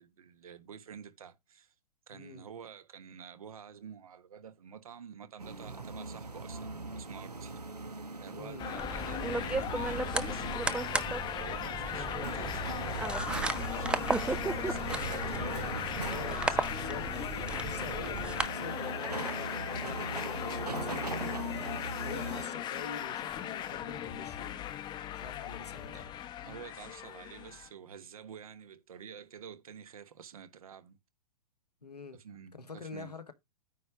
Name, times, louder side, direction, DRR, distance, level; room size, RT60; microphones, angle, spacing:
voice 1, 0.0-1.7 2.1-7.5 8.2-10.7 11.3-16.8 22.2-22.6 25.9-26.1 26.4-31.0 32.1-33.1, right 7 dB, 65° right, 1.3 m, -49 dB
voice 2, 2.1-2.5 8.3-8.7 16.0-17.1 17.6-21.7 22.0-24.7 25.1-26.1 31.8-32.2 32.5-33.3, left 4 dB, 85° left, 1.3 m, -46 dB
sound 1, 5.4-22.4, right 3 dB, 90° right, 1.2 m, -40 dB
sound 2, 8.6-27.7, left 10 dB, 25° left, 0.8 m, -38 dB
sound 3, 8.8-18.5, right 3 dB, 5° right, 0.5 m, -35 dB
9.3 x 3.3 x 5.8 m
figure-of-eight pair, 110°, 20 cm